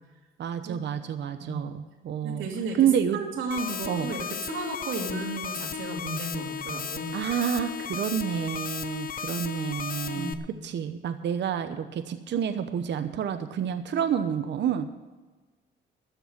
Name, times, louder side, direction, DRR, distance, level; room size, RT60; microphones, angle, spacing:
voice 1, 0.4-2.5 2.8-3.2 3.9-4.1 7.1-10.4 10.6-14.9, right 8 dB, 65° right, 9 dB, 0.9 m, -28 dB
voice 2, 2.2-2.8 3.1-7.2 10.1-10.6, right 3 dB, 80° right, 1 dB, 2.8 m, -34 dB
sound 1, 3.5-10.3, left 7 dB, 45° left, 0.9 m, -35 dB
13.0 x 7.0 x 9.1 m, 1.3 s
cardioid pair, 90°, 20 cm